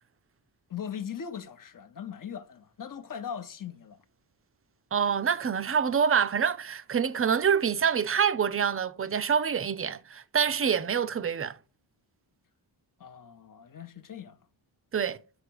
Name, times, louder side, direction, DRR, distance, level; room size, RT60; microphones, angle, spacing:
voice 1, 0.7-4.0 13.0-14.4, left 8 dB, 45° left, 0.8 m, -39 dB
voice 2, 4.9-11.6 14.9-15.2, right 7 dB, 30° right, 0.5 m, -26 dB
6.8 x 4.8 x 4.7 m
wide cardioid pair, 95°, 47 cm